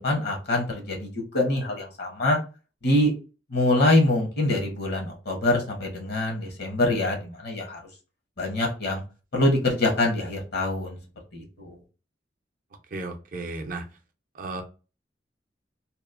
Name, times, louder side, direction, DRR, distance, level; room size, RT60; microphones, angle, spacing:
voice 1, 0.0-2.4 2.8-3.1 3.5-7.8 8.4-9.0 9.3-11.0 11.3-11.8, left 1 dB, 65° left, 1 dB, 0.9 m, -24 dB
voice 2, 12.9-13.9 14.3-14.6, right 2 dB, 50° right, 6 dB, 0.5 m, -34 dB
2.9 x 2.0 x 2.4 m, 0.33 s
head